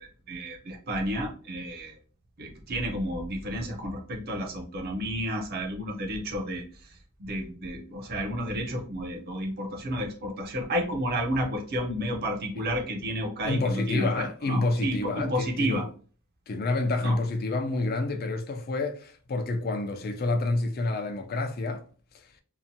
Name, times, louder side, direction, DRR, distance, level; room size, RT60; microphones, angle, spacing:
voice 1, 0.0-1.9 2.4-6.6 7.2-15.9 17.0-17.2, equal, 45° right, 0.5 m, -31 dB
voice 2, 13.4-15.9 16.5-21.8 22.1-22.3, left 2 dB, 45° left, 0.4 m, -28 dB
2.8 x 2.1 x 2.6 m
head